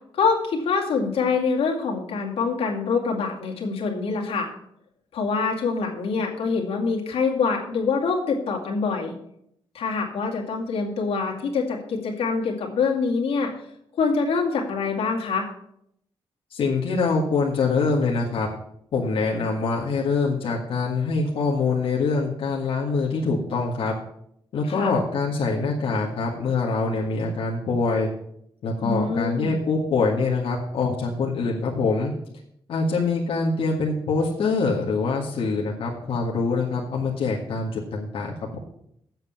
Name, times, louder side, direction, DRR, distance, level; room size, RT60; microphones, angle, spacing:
voice 1, 0.1-4.5 5.1-9.1 9.7-13.5 13.9-15.5 24.7-24.9 28.8-29.6, left 4 dB, 90° left, -1 dB, 2.4 m, -25 dB
voice 2, 16.5-18.5 18.9-23.9 24.5-28.1 28.6-32.1 32.7-38.6, left 4 dB, 70° left, -4 dB, 1.8 m, -24 dB
8.0 x 7.6 x 7.4 m, 0.73 s
wide cardioid pair, 160°, 10 cm